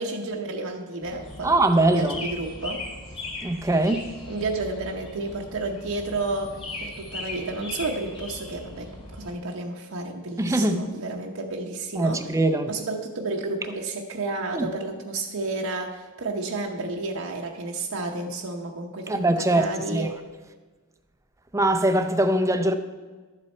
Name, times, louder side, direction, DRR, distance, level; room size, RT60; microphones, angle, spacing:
voice 1, 0.0-2.8 4.3-12.2 12.7-20.1, right 2 dB, 65° right, 0.8 m, -31 dB
sound 1, 1.0-9.3, left 2 dB, 25° left, 2.2 m, -39 dB
voice 2, 1.4-2.2 3.4-4.0 10.4-10.8 12.0-12.7 14.5-14.7 19.1-20.1 21.5-22.8, right 1 dB, 15° right, 0.6 m, -22 dB
12.0 x 7.4 x 4.4 m
head